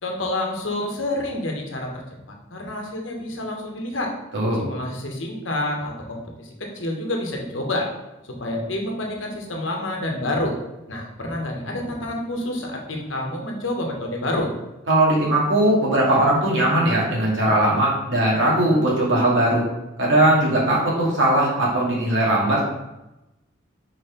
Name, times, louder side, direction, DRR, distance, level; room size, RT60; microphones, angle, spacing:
voice 1, 0.0-2.0 2.5-4.1 4.6-7.9 8.4-10.5 10.9-14.5, left 1 dB, 80° left, 1 dB, 1.3 m, -28 dB
voice 2, 14.9-19.6 20.0-22.7, right 1 dB, 65° right, -4 dB, 2.3 m, -19 dB
4.9 x 4.5 x 5.1 m, 0.96 s
head